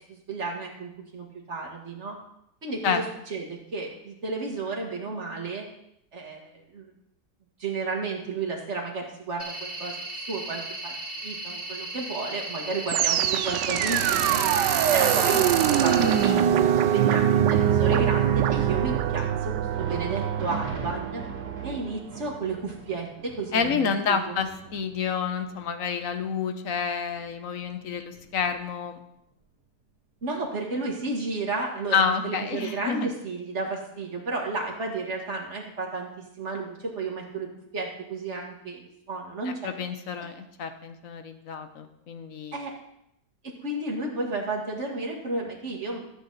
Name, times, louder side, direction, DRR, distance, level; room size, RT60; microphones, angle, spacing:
voice 1, 0.1-2.2 2.6-5.7 6.1-6.9 7.6-9.9 10.3-10.9 11.2-14.4 14.9-21.2 21.6-24.4 30.2-36.1 36.4-37.5 37.7-39.6 42.5-42.7 43.6-46.0, right 3 dB, 40° right, 0 dB, 2.2 m, -32 dB
sound 1, 9.4-16.3, right 2 dB, 15° left, 4.0 m, -36 dB
sound 2, 12.9-22.0, right 10 dB, 80° right, 1.2 m, -23 dB
Thunder, 19.6-29.0 29.3-29.5 30.2-30.3 31.3-31.4, right 3 dB, 60° right, 2.5 m, -43 dB
voice 2, 23.5-29.0 31.9-33.1 39.4-42.6, left 6 dB, 55° left, 8 dB, 1.2 m, -29 dB
13.5 x 8.1 x 4.1 m, 0.77 s
omnidirectional pair, 1.9 m